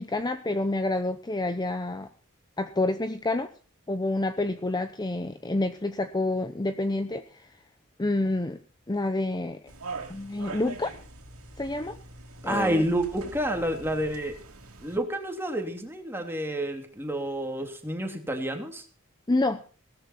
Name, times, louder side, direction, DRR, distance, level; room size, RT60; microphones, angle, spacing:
voice 1, 0.0-2.1 2.6-3.5 3.9-7.5 8.0-8.6 8.9-9.6 10.1-10.9 11.6-12.0 12.4-12.8 19.3-19.6, left 2 dB, 20° left, 10 dB, 0.8 m, -28 dB
sound 1, 9.7-15.0, right 3 dB, 85° right, 3.3 m, -43 dB
voice 2, 12.4-14.3 14.8-18.8, right 1 dB, 10° right, 4 dB, 2.9 m, -29 dB
17.5 x 13.5 x 4.4 m, 0.39 s
head